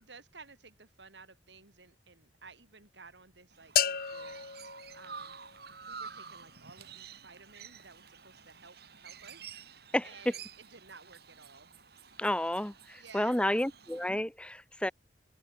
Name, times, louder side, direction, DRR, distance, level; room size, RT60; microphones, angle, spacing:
voice 1, 0.0-4.6 4.9-5.4 5.6-9.5 10.0-11.7 13.0-13.6 14.9-15.0, right 4 dB, 80° right, 4.7 m, -55 dB
Chirp tweet, 3.5-14.1, right 6 dB, 60° right, 7.8 m, -50 dB
sound 1, 3.8-5.7, left 10 dB, 55° left, 1.1 m, -33 dB
voice 2, 12.2-14.9, left 1 dB, 5° left, 0.8 m, -31 dB
open air
head